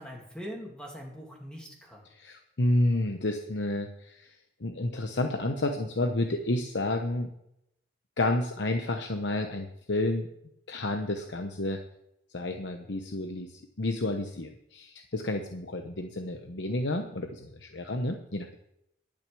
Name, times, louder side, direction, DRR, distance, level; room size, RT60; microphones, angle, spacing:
voice 1, 0.0-2.1, equal, 5° left, -2 dB, 2.3 m, -42 dB
voice 2, 2.2-7.3 8.2-10.3 10.7-11.8 12.3-18.6, left 2 dB, 80° left, 5 dB, 1.0 m, -30 dB
12.0 x 6.3 x 8.4 m, 0.79 s
head